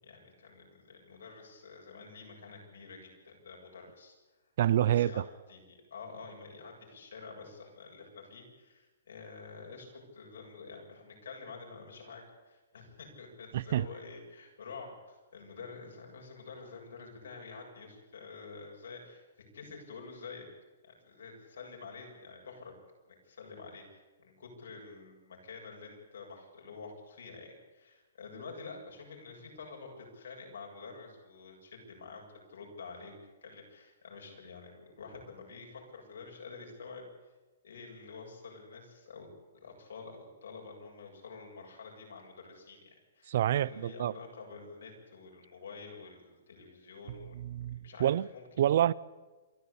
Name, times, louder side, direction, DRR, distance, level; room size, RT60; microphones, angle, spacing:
voice 1, 0.0-4.2 4.7-19.2 19.5-20.5 20.8-22.8 23.0-37.1 37.6-39.3 39.5-47.4 47.8-48.4, left 4 dB, 80° left, 7.7 m, -48 dB
voice 2, 4.6-5.3 13.5-13.9 43.3-44.1 47.4-48.3 48.6-48.9, right 11 dB, 50° right, 0.5 m, -27 dB
27.5 x 12.5 x 8.5 m
hypercardioid pair, 165°, 0 cm